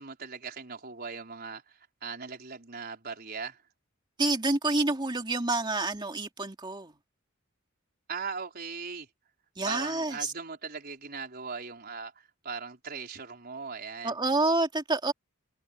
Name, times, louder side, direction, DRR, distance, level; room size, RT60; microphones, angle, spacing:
voice 1, 0.0-3.6 8.1-9.1 9.6-14.1, right 5 dB, 50° right, 4.6 m, -39 dB
voice 2, 4.2-6.9 9.6-10.3 14.0-15.1, right 2 dB, 25° right, 2.8 m, -28 dB
head